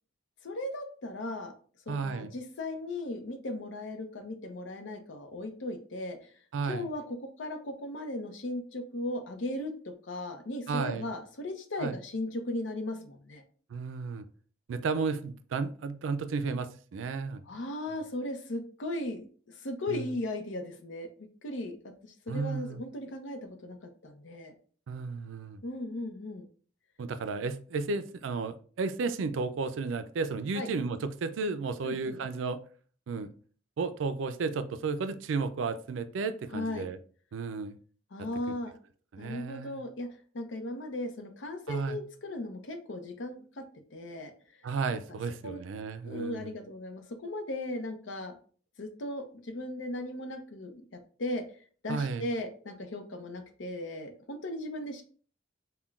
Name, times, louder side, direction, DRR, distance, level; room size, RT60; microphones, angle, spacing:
voice 1, 0.4-1.5 1.9-6.3 6.7-13.4 17.5-21.1 21.4-21.8 22.0-24.5 25.6-26.5 30.5-30.7 31.8-32.2 36.5-36.9 38.1-38.7 39.2-40.1 40.3-43.6 43.9-44.3 45.4-45.6 46.0-48.4 48.8-51.4 51.8-55.0, left 1 dB, 75° left, 6 dB, 0.6 m, -37 dB
voice 2, 1.9-2.3 6.5-6.9 10.7-11.1 11.8-12.0 13.7-14.3 14.7-17.4 19.9-20.1 22.3-22.8 24.9-25.6 27.0-32.6 33.1-33.3 33.8-37.0 37.3-37.8 39.1-39.8 41.7-42.0 44.6-46.5 51.9-52.3, right 4 dB, 85° right, 11 dB, 0.4 m, -33 dB
5.6 x 2.2 x 2.4 m, 0.43 s
head